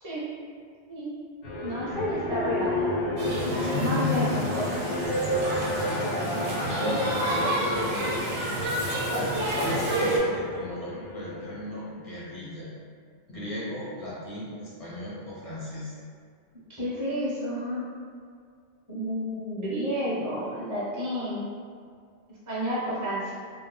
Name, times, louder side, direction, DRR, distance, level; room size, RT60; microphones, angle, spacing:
sound 1, 1.4-11.9, left 1 dB, 90° left, 0.9 m, -32 dB
voice 1, 1.6-4.6 16.7-17.8 18.9-21.5 22.5-23.3, equal, 20° right, -9 dB, 0.6 m, -30 dB
sound 2, 3.2-10.2, right 1 dB, 60° right, 0.7 m, -29 dB
voice 2, 3.6-4.4 6.7-7.6 9.1-12.7 13.3-15.9, left 2 dB, 50° left, -8 dB, 0.4 m, -35 dB
2.4 x 2.1 x 3.1 m, 2.1 s
omnidirectional pair, 1.2 m